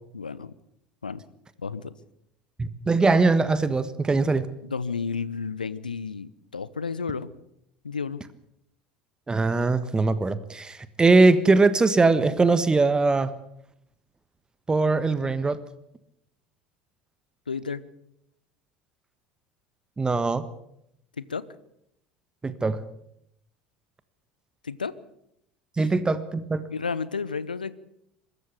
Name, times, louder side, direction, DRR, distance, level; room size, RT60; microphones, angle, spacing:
voice 1, 0.1-0.5 1.0-1.2 1.6-1.9 4.6-7.3 7.8-8.2 17.5-17.8 21.2-21.4 24.6-25.0 26.7-27.7, left 5 dB, 85° left, 18 dB, 0.8 m, -32 dB
voice 2, 2.6-4.5 9.3-13.3 14.7-15.6 20.0-20.5 22.4-22.8 25.8-26.6, right 3 dB, 20° right, 14 dB, 1.4 m, -21 dB
23.5 x 13.5 x 8.2 m, 0.77 s
figure-of-eight pair, 70°, 5 cm